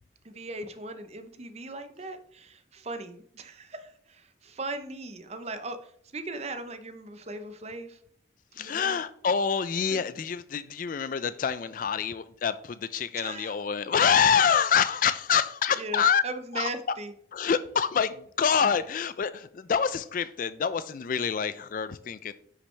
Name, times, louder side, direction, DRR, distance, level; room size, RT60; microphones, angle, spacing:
voice 1, 0.2-8.0 8.6-9.0 13.2-13.6 15.7-17.1, right 2 dB, 35° right, 9 dB, 0.7 m, -38 dB
voice 2, 8.6-16.2 16.5-16.7 17.3-22.3, left 7 dB, 45° left, 15 dB, 0.3 m, -26 dB
9.8 x 6.0 x 3.3 m, 0.66 s
head